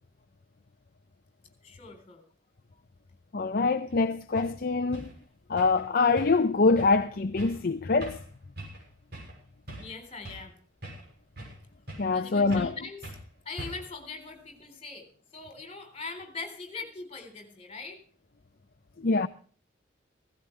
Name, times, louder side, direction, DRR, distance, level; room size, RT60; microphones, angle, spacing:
voice 1, 1.6-2.2 9.8-10.6 12.1-13.1 13.5-15.1 15.3-18.0, left 4 dB, 30° left, 3.8 m, -41 dB
voice 2, 3.3-5.1 5.5-8.2 12.0-12.8 19.0-19.3, left 3 dB, 50° left, 0.6 m, -24 dB
sound 1, 3.9-4.0 4.3-4.5 4.9-5.1 5.6-5.8 6.2-6.5 6.7-7.0 7.4-7.6 8.0-8.3 8.6-8.8 9.1-9.4 9.7-10.5 10.8-11.6 11.9-12.2 12.5-12.8 13.0-13.2 13.6-14.0, right 1 dB, 55° right, 6.5 m, -42 dB
16.5 x 15.5 x 3.3 m
head